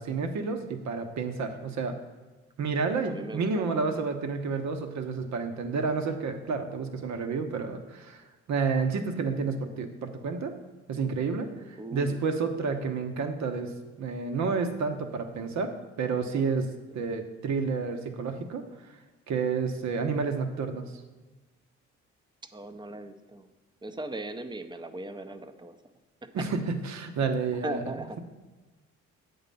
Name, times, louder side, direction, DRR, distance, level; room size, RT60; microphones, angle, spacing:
voice 1, 0.0-1.9 2.6-10.5 10.9-13.7 14.0-16.7 16.9-18.6 19.3-21.0 26.3-27.8, right 4 dB, 65° right, 6 dB, 1.0 m, -30 dB
voice 2, 3.0-3.8 11.8-12.2 17.1-17.2 22.5-23.5 23.8-25.8 27.6-28.2, right 2 dB, 15° right, 9 dB, 0.6 m, -38 dB
8.0 x 3.9 x 6.8 m, 1.2 s
cardioid pair, 90°, 30 cm